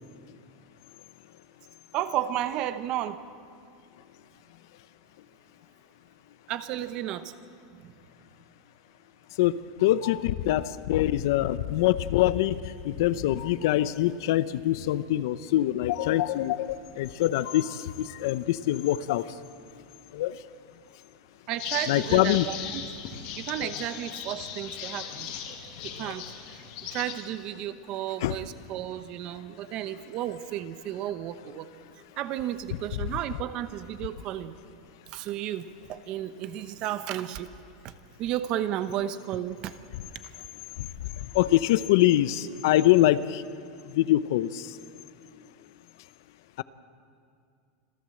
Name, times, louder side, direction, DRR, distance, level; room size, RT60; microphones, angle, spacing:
voice 1, 1.9-3.2 6.5-7.3 7.8-7.9 13.1-13.4 21.5-22.8 23.3-25.3 25.8-26.6 26.9-31.7 32.2-34.6 35.1-37.5 37.8-37.9 38.2-39.8, right 12 dB, 30° right, 12 dB, 0.8 m, -33 dB
voice 2, 9.8-19.2 20.1-20.3 21.9-22.5 23.6-23.7 28.2-28.4 40.8-40.9 41.3-43.4 43.9-44.7 46.6-46.7, left 14 dB, 60° left, 15 dB, 0.7 m, -24 dB
sound 1, 21.6-27.2, left 8 dB, 40° left, 2.1 m, -38 dB
26.5 x 15.0 x 7.7 m, 2.3 s
supercardioid pair, 180°, 2 cm